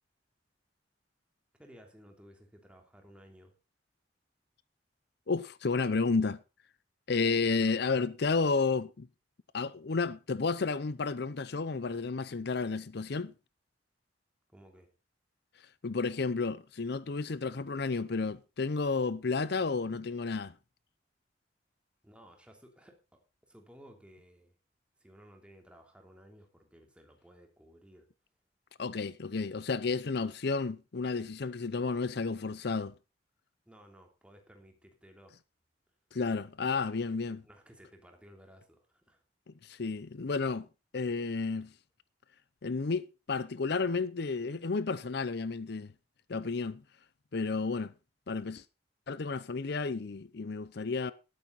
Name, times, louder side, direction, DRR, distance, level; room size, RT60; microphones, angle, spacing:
voice 1, 1.6-3.5 14.5-14.9 22.0-24.5 25.0-28.1 33.6-35.4 37.4-39.2 39.7-39.8, equal, 5° right, 3.1 m, -57 dB
voice 2, 5.3-6.4 7.1-9.1 9.5-13.3 15.8-20.5 28.8-32.9 36.1-37.4 39.5-40.7 40.9-41.7 42.6-45.9 46.3-46.8 47.3-47.9 48.3-48.6 49.1-51.1, left 4 dB, 60° left, 0.6 m, -32 dB
13.5 x 12.0 x 4.0 m
head